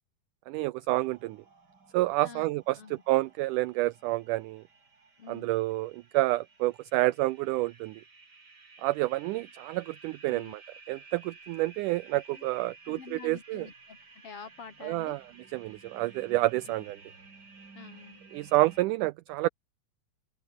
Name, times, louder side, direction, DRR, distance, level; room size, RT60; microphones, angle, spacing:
voice 1, 0.5-1.4 1.9-4.6 5.3-8.0 8.8-10.6 10.9-13.7 14.8-15.2 15.5-17.0 18.3-19.5, right 18 dB, 80° right, 1.8 m, -29 dB
sound 1, 0.9-18.8, right 4 dB, 30° right, 3.5 m, -55 dB
voice 2, 5.2-5.6 10.3-10.6 12.3-12.4 12.9-14.0 14.2-15.2 16.7-16.8 17.7-18.2, left 6 dB, 45° left, 2.9 m, -47 dB
open air
omnidirectional pair, 4.1 m